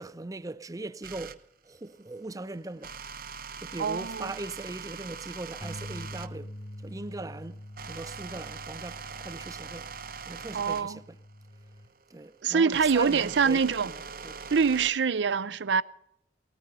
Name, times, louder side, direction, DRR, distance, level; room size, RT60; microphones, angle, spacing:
voice 1, 0.0-3.0 3.6-9.9 10.2-11.2 12.1-14.4, right 2 dB, 20° right, 0.5 m, -40 dB
sound 1, 1.0-1.4 2.8-6.3 7.0-14.9, right 5 dB, 55° right, 0.9 m, -42 dB
voice 2, 3.8-4.3 10.5-11.0 12.4-13.9 14.5-15.8, right 5 dB, 70° right, 0.5 m, -25 dB
sound 2, 5.6-11.9, left 1 dB, 15° left, 2.7 m, -45 dB
19.0 x 13.5 x 5.5 m
head